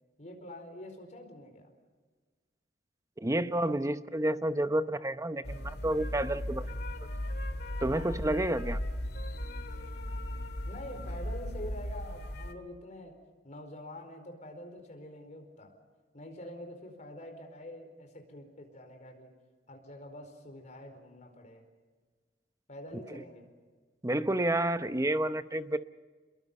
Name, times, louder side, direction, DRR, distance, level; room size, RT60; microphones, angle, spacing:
voice 1, 0.2-1.7 10.6-13.2 13.4-15.7 16.1-19.3 19.7-21.7 22.7-23.5, left 1 dB, 45° left, 5 dB, 4.6 m, -46 dB
voice 2, 3.2-6.7 7.8-8.8 23.1-23.2 24.0-25.8, right 1 dB, 20° right, 12 dB, 0.8 m, -30 dB
sound 1, 5.4-12.5, left 1 dB, 65° left, 2.3 m, -37 dB
29.5 x 22.0 x 5.5 m, 1.4 s
head